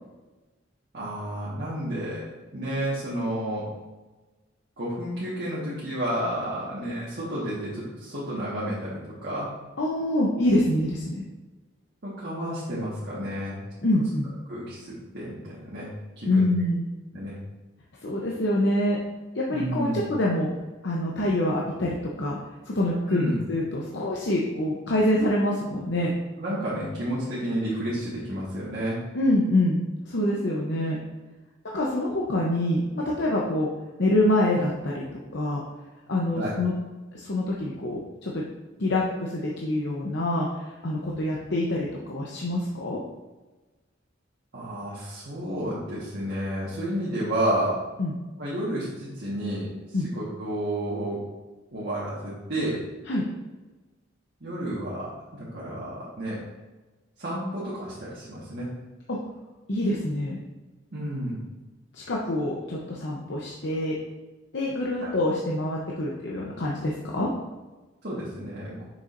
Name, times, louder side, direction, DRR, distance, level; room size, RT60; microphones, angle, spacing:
voice 1, 0.9-2.3 2.5-3.7 4.8-9.5 12.0-13.6 14.5-14.9 15.1-16.5 17.1-17.4 19.5-20.0 23.1-23.4 26.4-29.0 36.3-36.5 44.5-47.8 48.4-51.2 51.7-52.8 54.4-56.4 57.2-58.7 60.9-61.4 65.0-65.1 68.0-68.8, right 1 dB, 55° right, -8 dB, 1.5 m, -31 dB
voice 2, 9.8-11.2 13.8-14.3 16.3-16.9 18.0-19.0 19.3-20.5 20.8-22.4 22.7-23.2 23.5-26.1 29.1-31.0 31.7-33.7 34.0-35.6 36.1-36.7 37.1-38.4 38.8-43.0 48.0-48.1 49.9-50.1 53.1-53.3 59.1-59.2 59.7-60.4 61.9-64.0 64.5-67.3, left 1 dB, 60° left, -3 dB, 0.8 m, -26 dB
6.8 x 6.2 x 2.6 m, 1.2 s
head